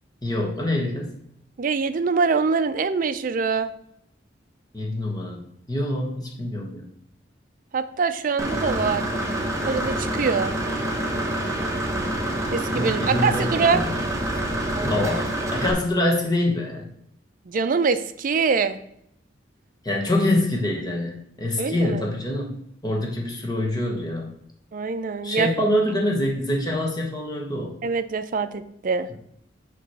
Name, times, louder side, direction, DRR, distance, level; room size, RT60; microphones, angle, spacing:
voice 1, 0.2-1.1 4.7-5.4 5.7-6.9 12.7-13.9 14.9-16.9 19.8-22.6 22.8-24.3 25.2-27.7, left 1 dB, 20° left, 0 dB, 1.1 m, -25 dB
voice 2, 1.6-3.7 7.7-9.1 9.6-10.5 12.5-13.8 17.5-18.8 21.6-22.0 24.7-25.5 27.8-29.1, right 5 dB, 45° right, 11 dB, 0.4 m, -24 dB
Engine / Mechanisms, 8.4-15.7, right 1 dB, 15° right, 0.9 m, -27 dB
7.0 x 3.0 x 6.0 m, 0.73 s
head